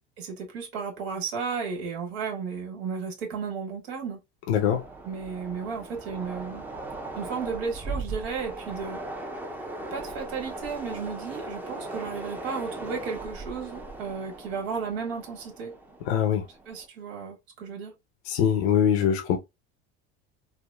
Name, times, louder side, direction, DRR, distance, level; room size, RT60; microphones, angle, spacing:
voice 1, 0.2-4.2 5.0-6.6 7.1-9.0 9.9-15.7 16.6-17.9, right 5 dB, 80° right, 1.5 m, -34 dB
voice 2, 4.5-4.8 16.1-16.4 18.3-19.4, left 8 dB, 80° left, 0.7 m, -23 dB
Train, 4.6-16.9, right 2 dB, 5° right, 0.5 m, -39 dB
3.4 x 2.0 x 2.3 m
supercardioid pair, 95°, 31 cm